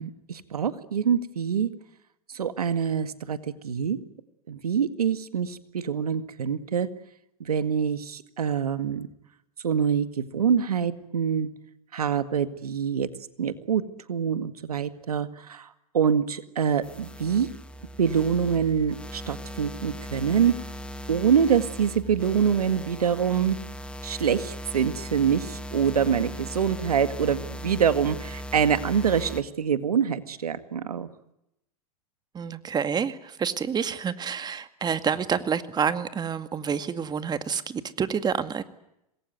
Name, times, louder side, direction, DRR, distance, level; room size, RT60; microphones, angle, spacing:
voice 1, 0.0-1.7 2.3-3.4 3.6-4.0 4.5-6.9 7.4-9.1 9.6-11.5 11.9-13.1 13.4-13.8 14.1-15.7 15.9-17.5 18.0-20.5 21.1-23.6 24.0-31.1, right 7 dB, 90° right, 2.0 m, -25 dB
sound 1, 16.8-29.4, equal, 5° left, 2.6 m, -38 dB
voice 2, 32.3-38.6, right 7 dB, 20° right, 2.1 m, -28 dB
26.5 x 21.0 x 9.4 m
hypercardioid pair, 105°, 19 cm